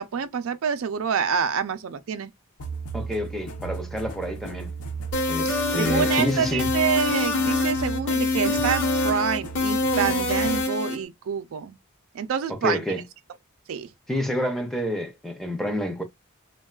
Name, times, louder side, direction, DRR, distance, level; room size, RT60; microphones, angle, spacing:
voice 1, 0.0-2.3 5.8-11.8 12.1-12.8 13.7-13.9, right 7 dB, 65° right, 0.4 m, -27 dB
sound 1, 2.6-10.6, right 4 dB, 90° left, 0.6 m, -36 dB
voice 2, 2.9-4.7 5.3-6.7 12.5-13.0 14.1-16.0, left 1 dB, ahead, 0.4 m, -28 dB
sound 2, 5.1-11.0, left 2 dB, 60° left, 0.9 m, -25 dB
3.4 x 2.2 x 2.3 m
head